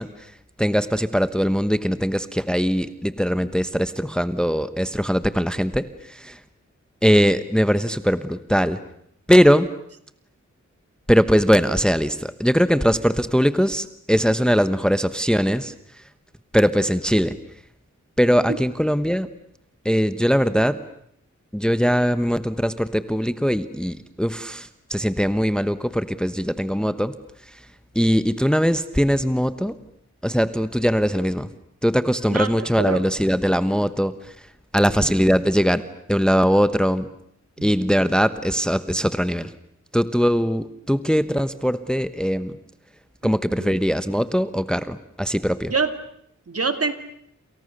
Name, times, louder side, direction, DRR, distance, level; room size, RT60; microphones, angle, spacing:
voice 1, 0.0-6.4 7.0-8.8 9.3-9.7 11.1-16.0 16.5-17.3 18.2-19.3 19.8-20.8 21.5-27.1 27.4-27.7 27.9-29.7 30.2-31.5 31.8-34.5 34.7-35.8 36.1-37.1 37.6-39.5 39.9-42.6 43.2-45.7, equal, 5° left, 13 dB, 1.1 m, -21 dB
voice 2, 32.3-33.0 34.8-35.1 37.6-37.7 43.2-43.3 43.6-43.8 45.7-45.9 46.5-46.9, right 4 dB, 50° right, 9 dB, 2.5 m, -26 dB
29.0 x 28.5 x 6.7 m, 0.69 s
wide cardioid pair, 100°, 30 cm